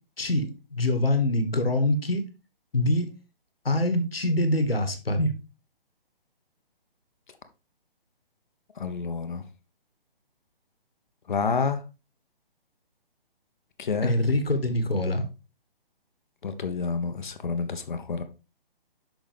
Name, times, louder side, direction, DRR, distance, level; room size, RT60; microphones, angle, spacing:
voice 1, 0.2-2.2 2.7-3.1 3.6-5.3 14.0-15.2, left 1 dB, 80° left, 1.6 m, -24 dB
voice 2, 8.8-9.4 11.3-11.8 13.8-14.1 16.4-18.2, left 5 dB, 55° left, 1.1 m, -29 dB
6.6 x 6.0 x 3.4 m
figure-of-eight pair, 140°, 29 cm